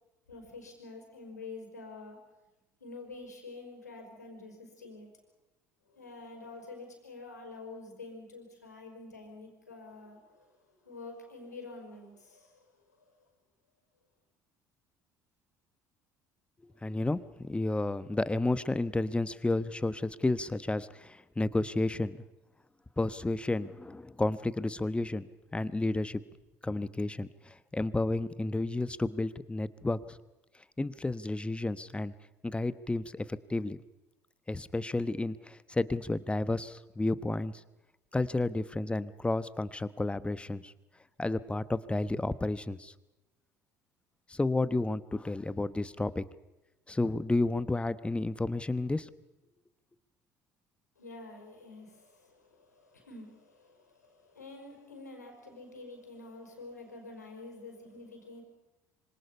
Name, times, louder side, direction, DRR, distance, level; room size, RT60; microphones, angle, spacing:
voice 1, 0.3-2.2 2.8-5.1 5.9-13.1 16.7-17.0 17.8-18.0 51.0-58.4, left 3 dB, 85° left, 3 dB, 5.1 m, -48 dB
voice 2, 16.8-22.2 23.0-26.2 26.6-30.2 30.8-32.1 32.4-33.8 34.5-37.6 38.1-40.7 41.2-42.9 44.3-46.2 46.9-49.1, left 2 dB, 10° left, 15 dB, 1.1 m, -31 dB
26.0 x 25.5 x 5.6 m, 0.99 s
figure-of-eight pair, 60°, 9 cm